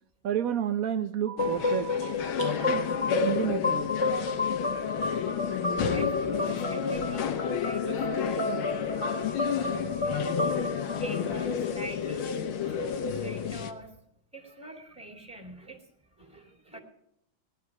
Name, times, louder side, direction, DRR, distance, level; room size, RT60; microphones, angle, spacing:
voice 1, 0.2-1.9 2.7-2.8 3.2-3.9 13.2-13.3, right 10 dB, 85° right, 9 dB, 0.7 m, -30 dB
sound 1, 1.3-11.9, left 3 dB, 15° left, 1.8 m, -32 dB
sound 2, 1.4-13.7, left 7 dB, 90° left, 2.0 m, -30 dB
voice 2, 5.9-8.5 9.6-9.7 10.0-14.0 14.3-16.8, right 1 dB, 5° right, 3 dB, 2.2 m, -45 dB
18.5 x 11.0 x 4.7 m, 0.81 s
omnidirectional pair, 2.2 m